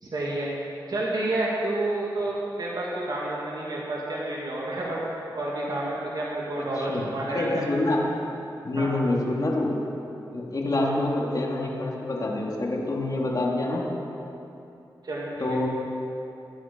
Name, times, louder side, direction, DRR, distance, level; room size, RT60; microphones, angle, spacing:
voice 1, 0.0-0.5 0.9-5.0 5.3-7.7 8.8-9.0 10.8-10.9 15.0-15.7, right 2 dB, 55° right, -5 dB, 2.5 m, -29 dB
voice 2, 6.6-8.0 8.6-9.7 10.3-13.9 15.4-15.7, left 2 dB, 45° left, -2 dB, 3.0 m, -27 dB
22.0 x 9.4 x 5.5 m, 2.9 s
cardioid pair, 70°, 8 cm